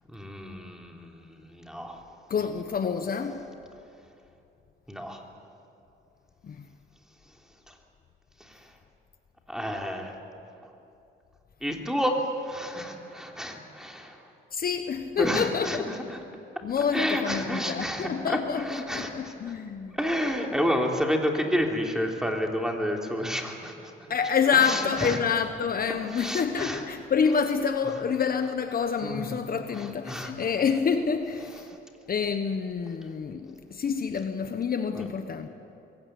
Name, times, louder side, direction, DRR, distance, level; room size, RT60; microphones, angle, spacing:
voice 1, 0.1-2.0 4.9-5.2 7.7-7.8 8.4-8.7 9.5-10.2 11.6-14.2 15.2-16.2 16.9-19.3 19.9-24.1 24.6-25.2 26.1-26.8 29.0-29.3 29.7-30.3 31.7-31.8 35.0-35.1, equal, 5° right, 1 dB, 3.4 m, -30 dB
voice 2, 2.3-3.4 6.4-6.6 14.5-15.9 16.6-20.0 24.1-31.7 32.1-35.5, left 6 dB, 45° left, 8 dB, 1.2 m, -27 dB
22.5 x 17.0 x 9.4 m, 2.7 s
cardioid pair, 90°, 20 cm